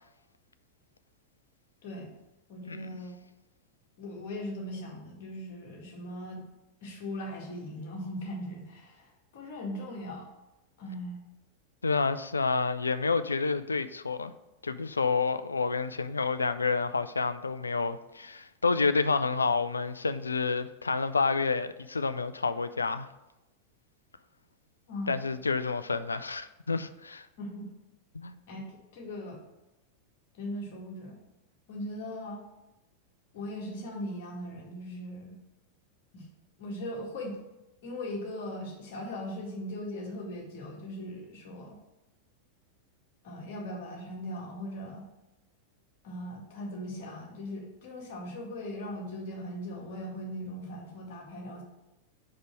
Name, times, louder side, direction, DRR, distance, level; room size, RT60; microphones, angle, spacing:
voice 1, 1.8-2.1 2.5-3.1 4.0-6.4 6.8-10.3 10.8-11.2 24.9-25.1 27.4-27.7 28.5-28.6 28.9-29.4 30.3-31.2 31.7-32.4 33.3-35.4 36.1-36.3 36.6-37.4 37.8-41.8 43.2-45.0 46.0-51.6, left 1 dB, 50° left, -2 dB, 2.0 m, -39 dB
voice 2, 11.8-14.3 14.6-23.1 25.1-27.3 28.1-28.4, left 4 dB, 75° left, 12 dB, 0.3 m, -29 dB
5.1 x 4.8 x 6.1 m, 0.97 s
figure-of-eight pair, 90°, 0 cm